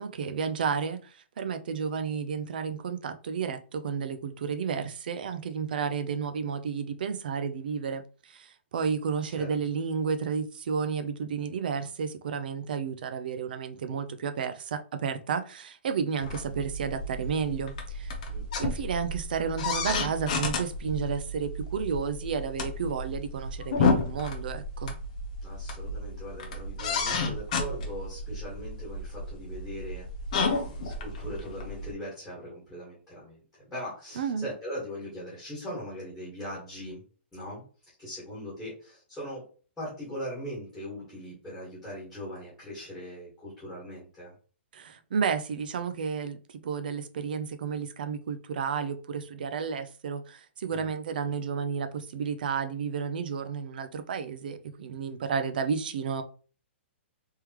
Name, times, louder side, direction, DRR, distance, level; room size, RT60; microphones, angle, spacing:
voice 1, 0.0-18.1 18.6-24.9 34.2-34.5 44.7-56.2, right 6 dB, 45° right, 0.5 m, -32 dB
sound 1, 16.2-31.9, left 3 dB, 35° left, 0.8 m, -32 dB
voice 2, 18.3-18.6 25.4-33.4 33.7-37.0 37.3-37.6 38.0-39.4 39.8-44.3 50.7-50.9, equal, 5° left, 1.6 m, -40 dB
3.6 x 3.2 x 3.0 m
hypercardioid pair, 180°, 7 cm